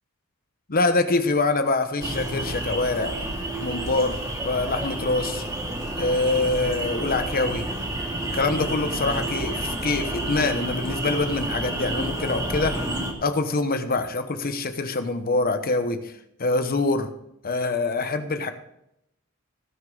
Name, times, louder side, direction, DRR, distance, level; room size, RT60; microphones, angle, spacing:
voice 1, 0.7-3.1 3.6-5.4 6.0-7.7 8.3-12.8 13.2-16.1 16.4-17.1 17.4-18.5, left 3 dB, 45° left, 8 dB, 1.0 m, -25 dB
sound 1, 2.0-13.1, right 1 dB, 20° right, 2.3 m, -30 dB
18.0 x 6.6 x 3.9 m, 0.78 s
head